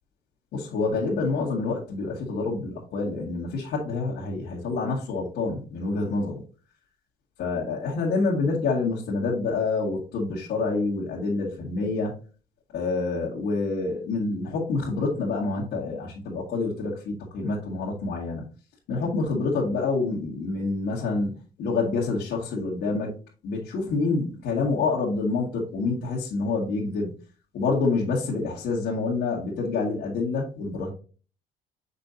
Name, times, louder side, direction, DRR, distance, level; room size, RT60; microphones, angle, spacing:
voice 1, 0.5-6.4 7.4-12.1 12.7-18.4 18.9-21.3 21.6-23.1 23.4-27.1 27.5-30.9, left 3 dB, 75° left, -6 dB, 2.0 m, -27 dB
6.6 x 5.4 x 2.8 m, 0.37 s
cardioid pair, 110°, 17 cm